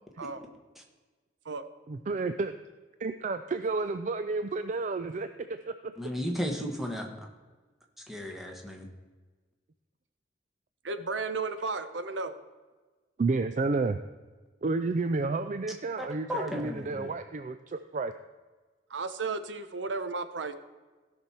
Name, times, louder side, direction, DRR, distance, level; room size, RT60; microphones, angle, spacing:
voice 1, 1.9-2.5 3.0-5.3 5.7-5.9 13.2-14.0 14.6-18.1, right 3 dB, 40° right, 10 dB, 0.4 m, -31 dB
voice 2, 6.0-7.3 8.1-8.9 16.0-17.1, equal, ahead, 1 dB, 1.4 m, -35 dB
voice 3, 10.8-12.3 18.9-20.5, right 4 dB, 80° right, 11 dB, 0.7 m, -34 dB
16.0 x 6.1 x 4.3 m, 1.3 s
head